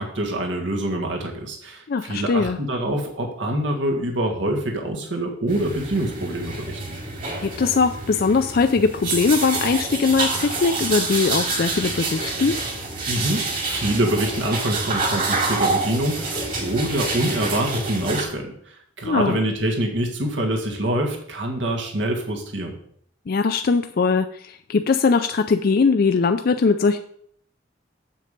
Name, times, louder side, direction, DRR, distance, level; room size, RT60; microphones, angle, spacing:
voice 1, 0.0-6.8 13.1-18.5 19.0-22.7, right 1 dB, 80° right, 2 dB, 1.8 m, -25 dB
voice 2, 1.9-2.6 7.4-12.6 19.0-19.4 23.3-27.0, left 4 dB, 55° left, 7 dB, 0.4 m, -20 dB
sound 1, 5.5-18.2, right 3 dB, 50° right, 2.5 m, -27 dB
7.7 x 7.5 x 5.3 m, 0.64 s
head